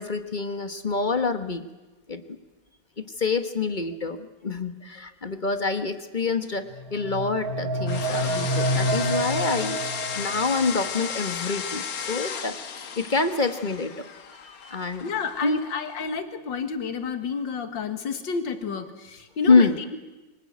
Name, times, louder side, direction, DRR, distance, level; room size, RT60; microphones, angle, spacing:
voice 1, 0.0-1.6 2.1-2.2 3.2-9.8 10.1-12.6 13.0-14.1 14.4-15.1 15.4-15.6 19.5-19.8, left 4 dB, 30° left, 10 dB, 1.2 m, -26 dB
sound 1, 6.7-10.7, right 1 dB, 55° right, 2.0 m, -28 dB
sound 2, 7.9-16.0, left 7 dB, 55° left, 1.6 m, -34 dB
voice 2, 15.0-20.0, left 5 dB, 80° left, 9 dB, 2.4 m, -30 dB
24.0 x 20.0 x 9.4 m, 1.1 s
omnidirectional pair, 2.0 m